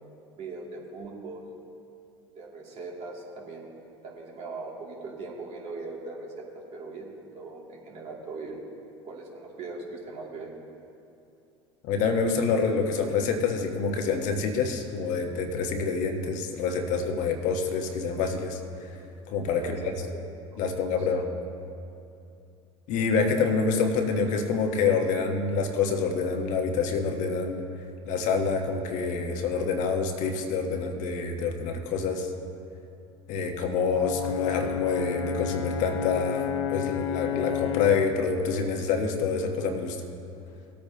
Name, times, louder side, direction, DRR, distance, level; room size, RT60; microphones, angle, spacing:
voice 1, 0.3-1.5 2.3-3.7 4.0-8.6 9.0-10.5 19.6-20.2 20.7-20.8, right 3 dB, 45° right, -3 dB, 2.6 m, -40 dB
voice 2, 11.8-18.9 19.3-19.8 20.6-21.2 22.9-27.7 28.1-32.3 33.3-40.0, left 5 dB, 55° left, 4 dB, 1.3 m, -27 dB
Brass instrument, 33.9-38.2, left 8 dB, 85° left, 0.5 m, -31 dB
18.5 x 8.6 x 2.9 m, 2.6 s
hypercardioid pair, 75°, 15 cm